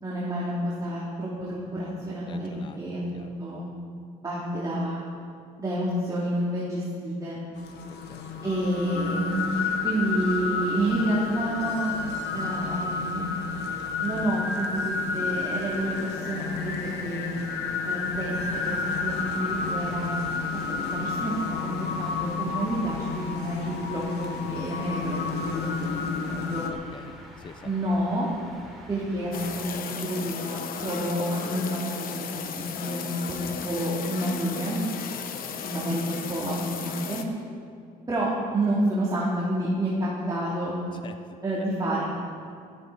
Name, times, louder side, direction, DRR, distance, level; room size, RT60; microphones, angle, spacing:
voice 1, 0.0-3.6 4.2-5.0 5.6-7.4 8.4-9.6 9.8-11.9 12.3-13.3 14.0-17.2 17.8-20.2 20.7-26.0 26.2-26.7 27.6-28.3 28.9-32.3 32.5-34.8 35.6-37.2 38.1-40.8 41.4-42.0, right 1 dB, 20° right, -7 dB, 2.8 m, -29 dB
voice 2, 2.3-2.8 3.1-3.3 8.1-8.2 26.7-27.7 41.0-41.4, left 5 dB, 30° left, 9 dB, 0.6 m, -46 dB
sound 1, 7.6-26.7, left 4 dB, 80° left, 1.4 m, -31 dB
sound 2, 18.1-29.6, equal, ahead, 3.6 m, -47 dB
sound 3, 29.3-37.2, left 6 dB, 60° left, 1.1 m, -35 dB
15.5 x 14.0 x 4.1 m, 2.2 s
cardioid pair, 110°, 17 cm